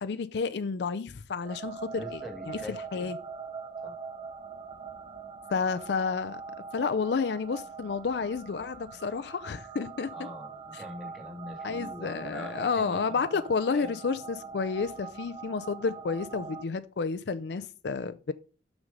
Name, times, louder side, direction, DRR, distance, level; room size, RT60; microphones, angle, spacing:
voice 1, 0.0-2.2 2.5-2.6 2.9-3.2 5.5-6.4 6.7-10.1 10.7-10.8 11.6-18.3, left 5 dB, 65° left, 0.4 m, -31 dB
sound 1, 1.4-16.6, right 5 dB, 30° right, 0.5 m, -43 dB
voice 2, 1.9-3.1 3.8-3.9 10.1-13.4 13.7-14.0, equal, ahead, 1.8 m, -43 dB
6.4 x 6.2 x 5.2 m
head